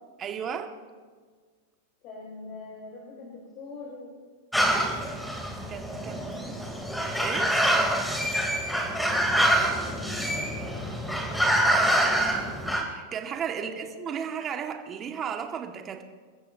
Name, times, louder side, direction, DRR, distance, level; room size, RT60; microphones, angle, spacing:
voice 1, 0.2-0.7 5.7-6.5 7.2-7.6 12.9-16.0, right 7 dB, 30° right, 3 dB, 1.9 m, -34 dB
voice 2, 2.0-4.1 6.0-6.4 6.7-6.8 8.7-10.9 11.5-12.3 13.6-13.9, left 3 dB, 45° left, -4 dB, 6.2 m, -44 dB
sound 1, 4.5-12.8, right 1 dB, 5° left, 3.5 m, -26 dB
29.0 x 14.5 x 2.9 m, 1.5 s
hypercardioid pair, 95°, 0 cm